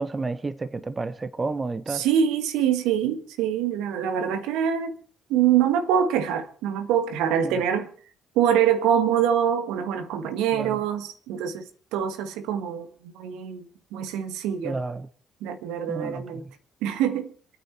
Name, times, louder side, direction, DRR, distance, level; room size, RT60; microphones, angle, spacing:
voice 1, 0.0-2.0 10.5-10.8 14.6-15.1 15.9-16.4, right 3 dB, 25° right, 1.1 m, -31 dB
voice 2, 1.9-4.9 5.3-7.9 8.3-12.9 13.1-13.7 13.9-14.8 15.4-16.4 16.8-17.3, right 9 dB, 70° right, 1.5 m, -24 dB
27.0 x 9.3 x 4.5 m
hypercardioid pair, 50°, 0 cm